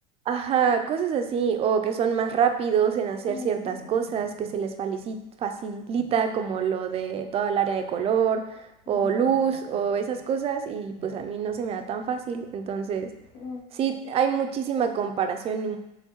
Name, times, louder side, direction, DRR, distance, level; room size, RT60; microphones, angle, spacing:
voice 1, 0.3-8.6 8.9-13.1 13.7-15.8, right 7 dB, 30° right, 7 dB, 0.3 m, -26 dB
sound 1, 1.2-4.5 4.9-5.1 5.6-5.7 5.9-8.5 8.8-10.7 11.0-13.6, left 4 dB, 85° left, 0.7 m, -44 dB
4.5 x 3.4 x 3.0 m, 0.93 s
supercardioid pair, 135°, 20 cm